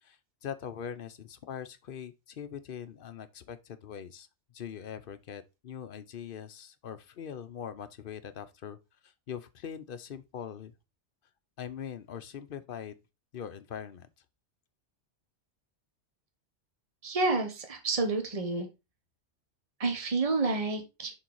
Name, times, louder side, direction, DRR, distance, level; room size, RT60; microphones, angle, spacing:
voice 1, 0.0-4.3 4.5-8.8 9.0-10.7 11.6-13.0 13.3-14.1, left 8 dB, 55° left, 0.8 m, -42 dB
voice 2, 17.0-18.7 19.8-21.1, right 3 dB, 35° right, 1.2 m, -29 dB
6.6 x 3.8 x 4.6 m
omnidirectional pair, 1.2 m